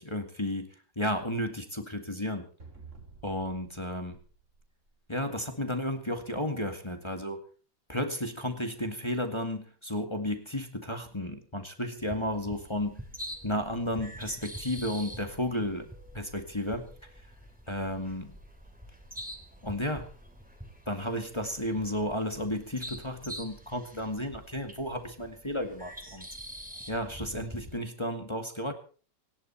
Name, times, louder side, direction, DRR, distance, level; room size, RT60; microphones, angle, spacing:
voice 1, 0.0-2.5 3.2-4.2 5.1-7.4 7.9-13.0 13.4-17.1 17.7-18.4 19.6-20.1 20.9-26.3 26.9-28.7, left 1 dB, 15° left, 5 dB, 2.0 m, -33 dB
sound 1, 2.6-5.3, right 4 dB, 40° right, 3.2 m, -52 dB
sound 2, 12.0-27.8, equal, 5° right, 3.0 m, -45 dB
26.0 x 11.0 x 4.3 m, 0.41 s
omnidirectional pair, 2.0 m